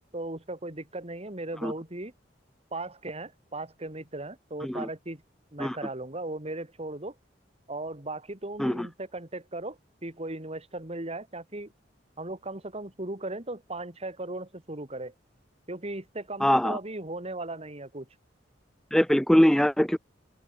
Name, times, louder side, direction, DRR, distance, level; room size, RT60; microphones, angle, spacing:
voice 1, 0.0-2.1 2.7-5.2 5.5-7.1 7.7-11.7 12.2-15.1 15.7-18.1, right 2 dB, 35° right, 3.0 m, -37 dB
voice 2, 16.4-16.8 18.9-20.0, equal, ahead, 0.3 m, -22 dB
open air
head